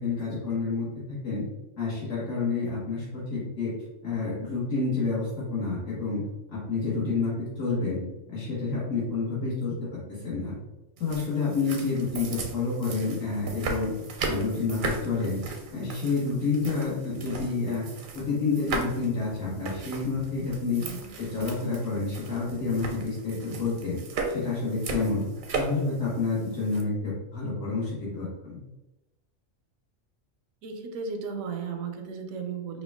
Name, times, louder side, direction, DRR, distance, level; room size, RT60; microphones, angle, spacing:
voice 1, 0.0-1.4 1.8-3.7 4.0-6.2 6.5-8.0 8.3-9.7 10.1-10.6 11.0-13.9 14.3-15.4 15.7-17.8 18.1-20.8 21.2-24.0 24.3-25.2 25.5-28.6, left 4 dB, 65° left, -9 dB, 1.6 m, -29 dB
sound 1, 11.0-26.8, right 3 dB, 55° right, 0.6 m, -37 dB
voice 2, 20.8-21.1 30.6-32.8, right 5 dB, 90° right, 5 dB, 1.1 m, -35 dB
5.0 x 2.2 x 3.4 m, 1.0 s
omnidirectional pair, 1.4 m